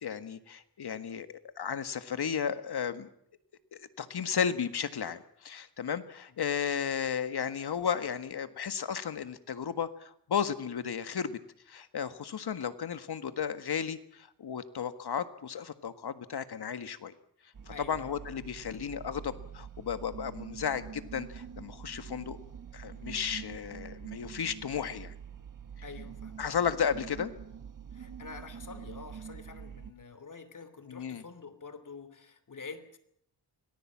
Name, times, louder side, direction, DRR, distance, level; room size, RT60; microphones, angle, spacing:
voice 1, 0.0-3.1 3.7-11.4 11.7-17.1 17.9-22.4 22.7-25.1 26.4-27.3 30.9-31.2, left 7 dB, 70° left, 11 dB, 1.7 m, -34 dB
sound 1, 17.5-29.9, right 7 dB, 50° right, 1.6 m, -45 dB
voice 2, 17.7-18.1 25.8-26.4 27.9-33.0, left 4 dB, 50° left, 12 dB, 3.0 m, -47 dB
25.5 x 19.0 x 7.4 m, 0.71 s
wide cardioid pair, 95°, 40 cm